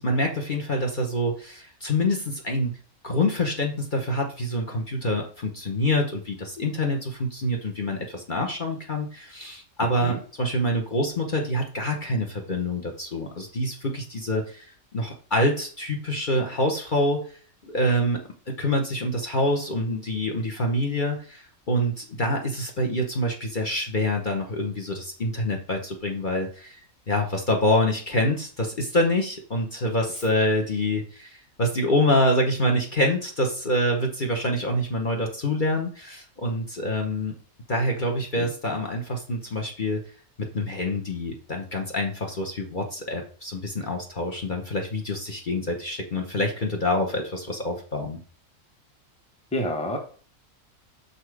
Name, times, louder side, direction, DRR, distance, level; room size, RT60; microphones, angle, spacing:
voice 1, 0.0-2.8 3.0-14.7 14.9-17.2 17.6-18.2 18.5-26.8 27.1-37.3 37.7-40.0 40.4-48.2, left 1 dB, 40° left, 1 dB, 1.1 m, -26 dB
voice 2, 49.5-50.0, equal, 5° left, 2 dB, 1.1 m, -28 dB
6.5 x 4.2 x 4.8 m, 0.42 s
omnidirectional pair, 1.4 m